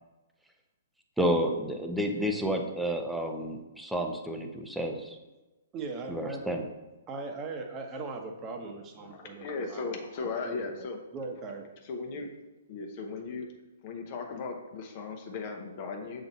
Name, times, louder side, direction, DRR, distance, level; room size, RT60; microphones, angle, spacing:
voice 1, 1.2-5.2 6.1-6.7, equal, ahead, 3 dB, 0.6 m, -30 dB
voice 2, 5.7-6.5 7.1-10.0 10.4-10.9 11.1-11.7, right 3 dB, 25° right, 3 dB, 1.0 m, -39 dB
voice 3, 9.0-11.0 11.8-12.3 12.7-13.5 13.8-16.3, left 4 dB, 40° left, 3 dB, 0.8 m, -37 dB
6.9 x 3.9 x 4.2 m, 1.1 s
figure-of-eight pair, 120°, 0 cm